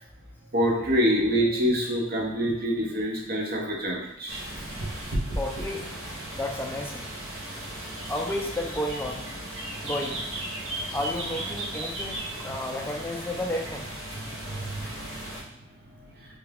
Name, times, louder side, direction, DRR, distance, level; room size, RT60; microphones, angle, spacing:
voice 1, 0.5-4.8 10.8-10.9 14.5-14.7, equal, 50° right, -1 dB, 0.7 m, -26 dB
sound 1, 4.3-15.4, right 1 dB, 85° right, 0.8 m, -35 dB
voice 2, 5.4-5.9 6.3-7.1 8.1-9.3 9.8-10.3 10.9-13.9, left 1 dB, 10° left, 1 dB, 0.3 m, -32 dB
3.2 x 2.3 x 3.3 m, 0.79 s
head